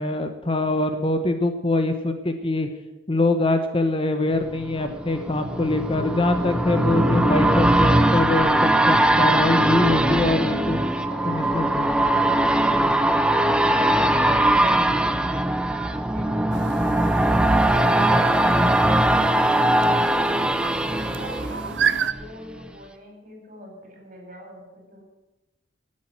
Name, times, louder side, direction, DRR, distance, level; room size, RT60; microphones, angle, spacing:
voice 1, 0.0-2.7 3.1-10.8 11.3-11.9, left 2 dB, 30° left, 7 dB, 0.9 m, -23 dB
sound 1, 4.4-22.2 22.6-22.7, right 1 dB, 5° right, 0.6 m, -20 dB
voice 2, 9.8-15.5 15.9-20.5 20.8-25.0, equal, 45° right, 1 dB, 4.6 m, -42 dB
Chirp tweet, 16.5-22.1, right 7 dB, 70° right, 0.6 m, -31 dB
12.0 x 7.5 x 9.2 m, 1.0 s
head